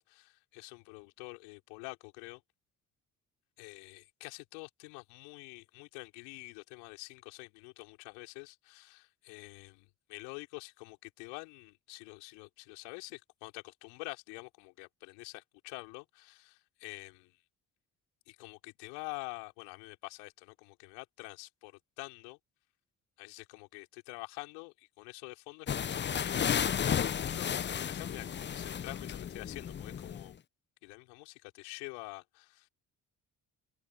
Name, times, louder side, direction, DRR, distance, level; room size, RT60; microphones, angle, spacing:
voice 1, 0.0-2.4 3.6-17.4 18.3-22.4 23.2-26.9 27.2-30.4 30.8-32.7, left 33 dB, 80° left, 4.1 m, -47 dB
sound 1, 25.7-30.3, left 8 dB, 25° left, 0.5 m, -33 dB
open air
hypercardioid pair, 40°, 46 cm